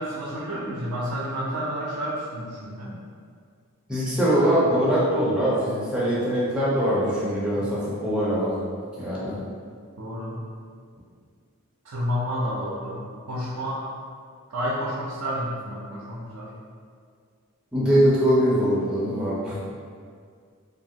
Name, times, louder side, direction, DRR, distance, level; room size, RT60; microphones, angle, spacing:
voice 1, 0.0-2.9 4.4-4.7 10.0-10.4 11.8-13.0 13.3-13.8 14.5-16.5, equal, 80° right, -6 dB, 0.5 m, -30 dB
voice 2, 3.9-8.5 9.0-9.4 17.7-19.6, equal, 5° right, -9 dB, 0.5 m, -22 dB
2.8 x 2.4 x 2.7 m, 2.1 s
head